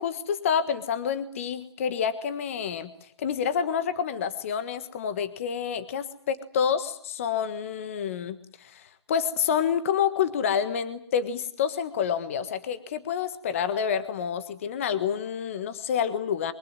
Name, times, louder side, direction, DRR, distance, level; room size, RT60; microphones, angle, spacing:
voice 1, 0.0-16.5, left 7 dB, 30° left, 12 dB, 1.5 m, -28 dB
24.0 x 23.5 x 9.6 m, 0.64 s
hypercardioid pair, 165°, 14 cm